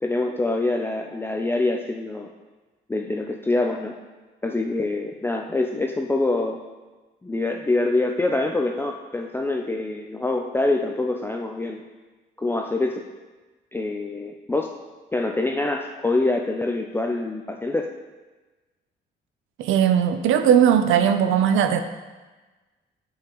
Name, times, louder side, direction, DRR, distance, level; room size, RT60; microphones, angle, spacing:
voice 1, 0.0-2.3 2.9-3.9 4.4-6.6 7.2-11.8 12.4-13.0 13.7-14.7 15.1-17.9, left 2 dB, 10° left, 2 dB, 0.4 m, -25 dB
voice 2, 19.6-21.8, right 9 dB, 85° right, 9 dB, 0.5 m, -18 dB
7.3 x 5.6 x 3.0 m, 1.2 s
cardioid pair, 90°, 20 cm